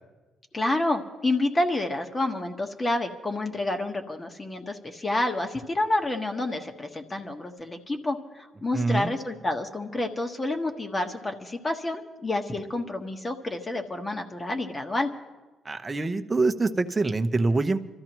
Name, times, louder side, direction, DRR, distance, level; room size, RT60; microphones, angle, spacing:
voice 1, 0.5-15.1, left 2 dB, 25° left, 5 dB, 1.4 m, -29 dB
voice 2, 8.7-9.1 15.6-17.8, right 3 dB, 20° right, 7 dB, 0.8 m, -25 dB
26.0 x 13.5 x 3.1 m, 1.2 s
cardioid pair, 90°, 0 cm